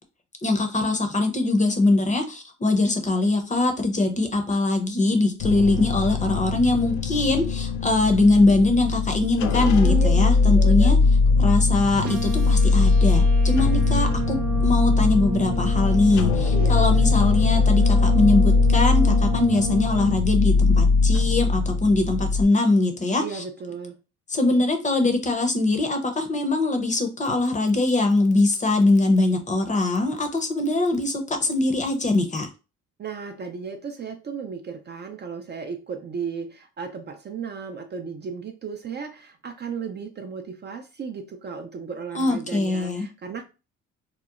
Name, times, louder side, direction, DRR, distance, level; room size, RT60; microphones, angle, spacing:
voice 1, 0.4-11.0 11.4-23.4 24.3-32.5 42.1-43.1, left 2 dB, 25° left, 5 dB, 0.6 m, -22 dB
sound 1, 5.4-22.4, left 4 dB, 75° left, 0.5 m, -20 dB
voice 2, 10.4-10.9 16.5-17.1 23.2-24.0 33.0-43.4, right 5 dB, 35° right, 6 dB, 0.4 m, -34 dB
sound 2, 12.0-20.0, right 7 dB, 85° right, 0.8 m, -32 dB
2.9 x 2.0 x 2.4 m, 0.30 s
cardioid pair, 90°, 30 cm